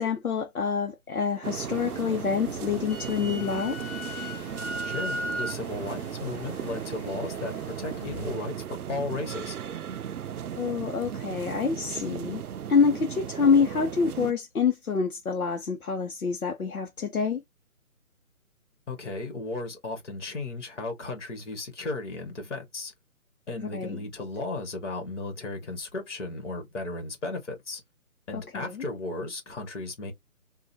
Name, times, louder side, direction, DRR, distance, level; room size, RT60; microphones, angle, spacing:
voice 1, 0.0-3.8 10.6-12.4 12.7-17.4 23.6-24.1 28.3-28.8, left 5 dB, 75° left, 1.1 m, -27 dB
sound 1, 1.4-14.3, right 9 dB, 80° right, 0.6 m, -36 dB
sound 2, 1.6-8.4, left 2 dB, 20° left, 1.9 m, -45 dB
Wind instrument woodwind instrument, 2.6-5.6, equal, 10° right, 0.6 m, -35 dB
voice 2, 4.8-8.5 8.9-9.6 18.9-22.9 23.5-27.8 28.3-30.1, left 2 dB, 55° left, 1.9 m, -35 dB
3.7 x 2.6 x 2.8 m
figure-of-eight pair, 145°, 44 cm